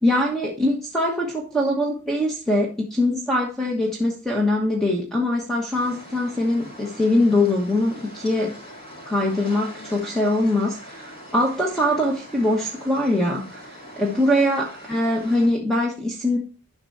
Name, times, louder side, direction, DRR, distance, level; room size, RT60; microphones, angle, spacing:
voice 1, 0.0-8.5 9.1-13.6 14.0-16.4, left 1 dB, ahead, -1 dB, 1.2 m, -22 dB
sound 1, 5.7-15.5, equal, 30° left, 4.9 m, -42 dB
10.5 x 6.0 x 2.7 m, 0.33 s
head